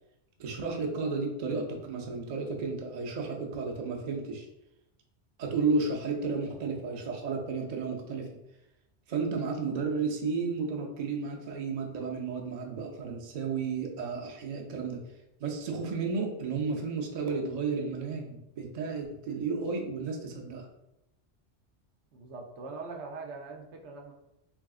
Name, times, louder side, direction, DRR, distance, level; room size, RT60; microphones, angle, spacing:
voice 1, 0.4-4.5 5.4-8.3 9.1-15.0 15.4-20.7, right 4 dB, 45° right, 1 dB, 0.6 m, -32 dB
voice 2, 22.1-24.1, right 3 dB, 80° right, 2 dB, 0.9 m, -42 dB
3.6 x 3.4 x 2.4 m, 0.87 s
omnidirectional pair, 1.2 m